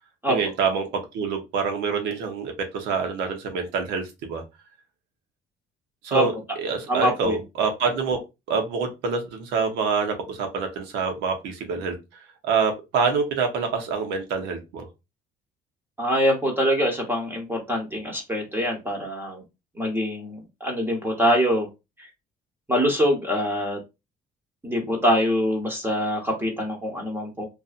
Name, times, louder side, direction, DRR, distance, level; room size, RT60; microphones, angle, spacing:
voice 1, 0.3-4.4 6.0-6.3 6.6-8.2 8.5-14.9, right 5 dB, 90° right, 5 dB, 0.9 m, -26 dB
voice 2, 6.9-7.4 16.0-19.4 19.8-21.7 22.7-23.8 24.6-27.5, equal, 15° right, 1 dB, 0.9 m, -24 dB
2.6 x 2.5 x 2.4 m, 0.24 s
cardioid pair, 110°, 17 cm